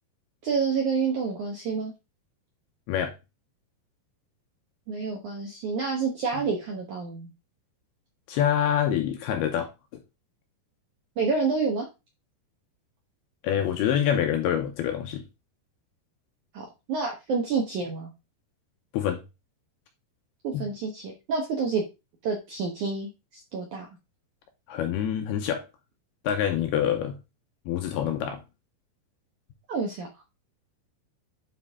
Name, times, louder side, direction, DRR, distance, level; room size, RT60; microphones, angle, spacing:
voice 1, 0.4-1.9 4.9-7.3 11.2-11.9 16.5-18.1 20.4-21.8 22.2-23.9 29.7-30.1, right 5 dB, 70° right, 1.8 m, -28 dB
voice 2, 8.3-9.7 13.4-15.2 18.9-19.2 20.5-20.7 24.7-25.6 26.2-27.2 27.7-28.4, left 9 dB, 75° left, 2.5 m, -26 dB
9.6 x 4.0 x 3.5 m
omnidirectional pair, 5.2 m